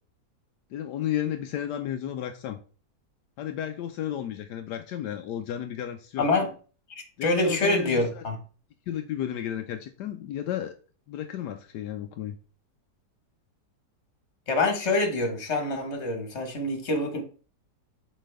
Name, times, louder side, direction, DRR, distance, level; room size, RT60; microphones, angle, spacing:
voice 1, 0.7-2.6 3.4-6.3 7.2-8.2 8.9-10.7 11.1-12.4, left 11 dB, 80° left, 6 dB, 1.2 m, -33 dB
voice 2, 6.2-6.5 6.9-8.4 14.5-17.2, left 2 dB, 40° left, 5 dB, 1.8 m, -26 dB
7.5 x 4.7 x 3.4 m, 0.38 s
omnidirectional pair, 1.8 m